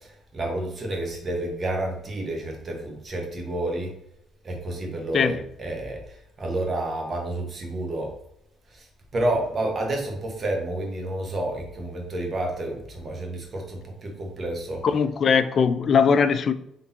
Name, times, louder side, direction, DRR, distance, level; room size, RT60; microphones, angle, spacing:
voice 1, 0.0-3.9 4.4-8.1 8.7-8.8 9.1-14.8, right 1 dB, 40° right, 1.3 m, -30 dB
voice 2, 14.8-16.5, left 6 dB, 50° left, 0.4 m, -20 dB
3.8 x 3.4 x 2.8 m
cardioid pair, 85°, 0 cm